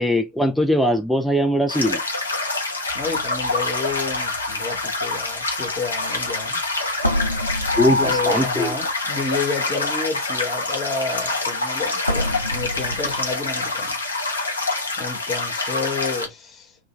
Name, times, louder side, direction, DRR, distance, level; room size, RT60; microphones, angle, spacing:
voice 1, 0.0-2.0 7.8-8.7, equal, ahead, 0.3 m, -20 dB
sound 1, 1.7-16.3, left 3 dB, 75° left, 0.8 m, -26 dB
voice 2, 2.9-6.6 7.9-14.0 15.0-16.8, left 4 dB, 20° left, 1.0 m, -30 dB
sound 2, 2.9-6.5 7.0-9.5 10.4-10.5 12.0-13.9, left 1 dB, 90° right, 0.5 m, -28 dB
3.0 x 2.2 x 3.2 m
figure-of-eight pair, 90°, 0 cm